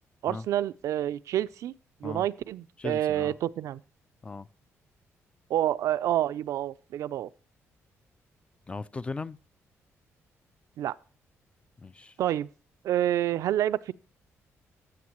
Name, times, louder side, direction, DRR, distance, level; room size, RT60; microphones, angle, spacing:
voice 1, 0.2-1.7 2.0-3.8 5.5-7.3 10.8-11.0 12.2-12.5 12.8-13.9, right 12 dB, 75° right, 0.4 m, -28 dB
voice 2, 2.8-3.4 4.2-4.5 8.7-9.4 11.8-12.2, left 3 dB, 20° left, 0.3 m, -37 dB
14.5 x 7.1 x 3.0 m
cardioid pair, 110°, 5 cm